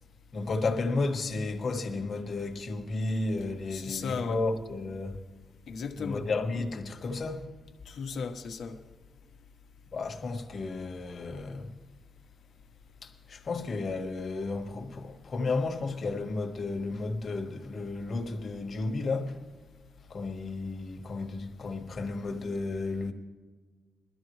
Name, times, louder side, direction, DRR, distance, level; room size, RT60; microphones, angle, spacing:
voice 1, 0.3-5.2 6.0-7.5 9.9-11.7 13.0-19.4 20.1-23.1, left 3 dB, 40° left, 1.3 m, -33 dB
voice 2, 3.7-4.4 5.7-6.2 7.9-8.8, left 5 dB, 70° left, 1.2 m, -35 dB
21.5 x 13.0 x 3.2 m
wide cardioid pair, 170°, 0 cm